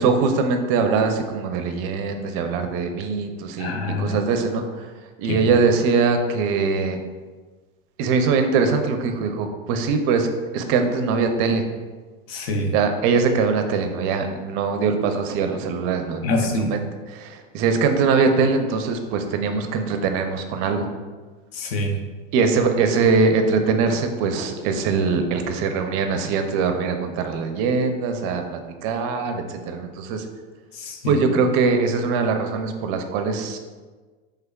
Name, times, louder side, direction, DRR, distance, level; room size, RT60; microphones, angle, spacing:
voice 1, 0.0-4.9 5.2-7.0 8.0-10.3 10.5-11.7 12.7-16.8 17.1-20.9 22.3-30.2 31.1-33.6, right 4 dB, 50° right, 6 dB, 0.4 m, -22 dB
voice 2, 3.6-4.2 5.3-5.4 12.3-12.7 16.2-16.7 21.5-22.0 30.7-31.2, left 2 dB, 85° left, 3 dB, 0.6 m, -25 dB
3.4 x 3.3 x 2.3 m, 1.4 s
supercardioid pair, 120°, 30 cm